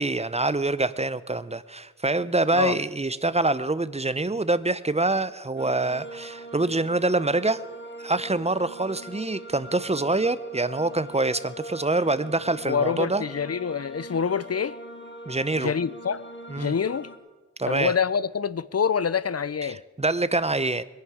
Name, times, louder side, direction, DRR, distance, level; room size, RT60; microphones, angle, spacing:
voice 1, 0.0-7.6 8.0-13.2 15.3-15.7 16.5-16.7 17.6-17.9 19.6-20.8, right 2 dB, 20° right, 0.6 m, -25 dB
sound 1, 5.6-17.2, right 1 dB, 35° left, 1.9 m, -42 dB
voice 2, 12.6-14.8 15.6-16.2 16.6-17.1 17.7-19.8, left 6 dB, 55° left, 0.5 m, -26 dB
22.0 x 10.5 x 4.8 m
wide cardioid pair, 50°, 30 cm